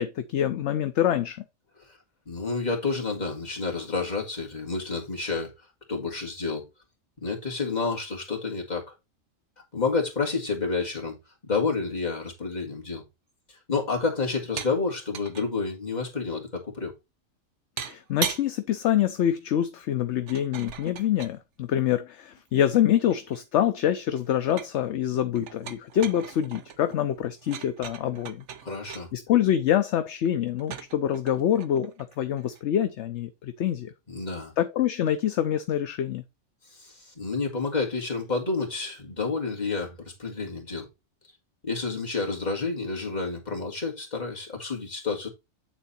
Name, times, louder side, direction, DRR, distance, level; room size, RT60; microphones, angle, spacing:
voice 1, 0.0-1.4 17.8-28.4 29.1-33.9 34.6-36.2, left 10 dB, 65° left, 0.9 m, -26 dB
voice 2, 2.3-5.5 5.9-6.6 7.2-8.9 9.7-11.1 11.4-13.0 13.5-16.9 28.6-29.1 34.1-34.5 36.7-40.9 41.6-45.3, left 4 dB, 30° left, 2.2 m, -29 dB
sound 1, 14.6-14.8 15.1-15.5 17.8-18.5 20.3-21.4 22.4-23.6 23.9-24.9 25.4-29.0 30.6-32.6, right 8 dB, 65° right, 1.0 m, -38 dB
9.1 x 3.9 x 4.2 m
omnidirectional pair, 1.4 m